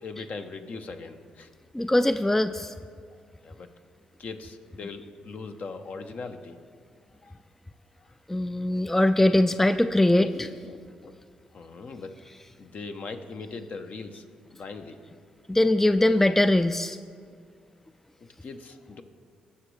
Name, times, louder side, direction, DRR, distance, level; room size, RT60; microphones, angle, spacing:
voice 1, 0.0-1.5 3.1-3.7 4.2-6.6 7.2-7.3 8.0-8.1 10.2-11.1 11.5-12.2 12.6-14.2 14.5-15.0 18.2-19.0, left 4 dB, 55° left, 6 dB, 0.8 m, -40 dB
voice 2, 1.7-2.7 8.3-10.5 15.5-17.0, left 1 dB, 10° left, 11 dB, 0.3 m, -22 dB
18.5 x 6.9 x 3.2 m, 2.1 s
hypercardioid pair, 45°, 3 cm